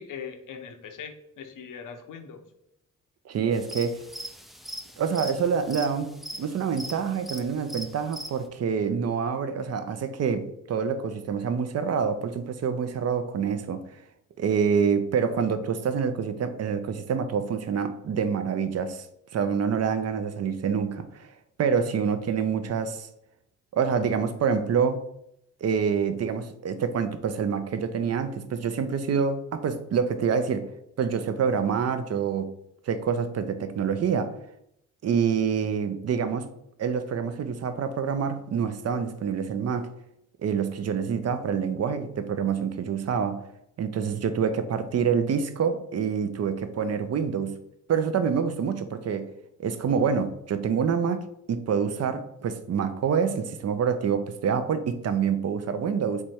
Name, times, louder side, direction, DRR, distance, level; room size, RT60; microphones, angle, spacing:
voice 1, 0.0-2.4, left 6 dB, 80° left, 0.8 m, -40 dB
voice 2, 3.3-4.0 5.0-13.9 14.4-19.1 19.3-21.3 21.6-23.1 23.7-25.0 25.6-30.7 31.0-32.5 32.9-34.3 35.0-36.5 36.8-39.9 40.4-43.4 43.8-47.6 47.9-49.3 49.6-56.2, right 6 dB, 50° right, 0.5 m, -26 dB
sound 1, 3.5-8.5, right 1 dB, ahead, 0.3 m, -40 dB
3.4 x 3.1 x 4.3 m
cardioid pair, 90°, 31 cm